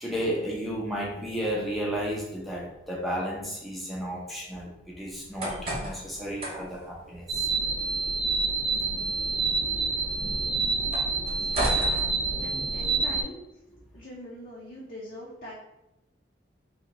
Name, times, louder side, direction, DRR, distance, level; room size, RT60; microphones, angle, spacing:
voice 1, 0.0-7.5, equal, ahead, -5 dB, 0.7 m, -33 dB
sound 1, 5.1-12.9, right 1 dB, 30° right, 0.9 m, -37 dB
sound 2, 7.3-13.2, right 4 dB, 65° right, 0.8 m, -27 dB
voice 2, 11.4-11.8 12.4-13.4 13.9-15.5, left 1 dB, 45° left, -6 dB, 0.7 m, -42 dB
2.8 x 2.8 x 4.1 m, 0.91 s
head